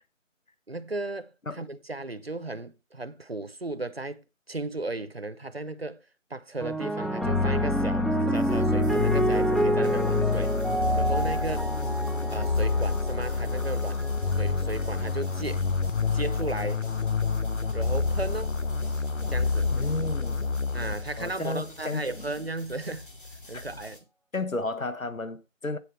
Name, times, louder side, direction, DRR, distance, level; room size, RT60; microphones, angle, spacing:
voice 1, 0.7-6.0 6.3-10.6 10.9-11.7 12.3-14.0 14.3-15.7 16.1-16.8 17.7-18.5 19.3-19.7 20.7-23.1 23.5-24.0, right 2 dB, 50° right, 0.8 m, -35 dB
sound 1, 6.6-15.2 16.1-16.5, right 1 dB, ahead, 0.4 m, -29 dB
sound 2, 7.2-21.3, left 4 dB, 65° left, 0.7 m, -28 dB
sound 3, 8.3-24.0, left 1 dB, 40° left, 2.1 m, -47 dB
voice 2, 19.7-20.4 21.2-22.3 23.5-23.6 24.3-25.8, left 2 dB, 80° left, 1.4 m, -32 dB
8.6 x 7.6 x 4.2 m
figure-of-eight pair, 170°, 40 cm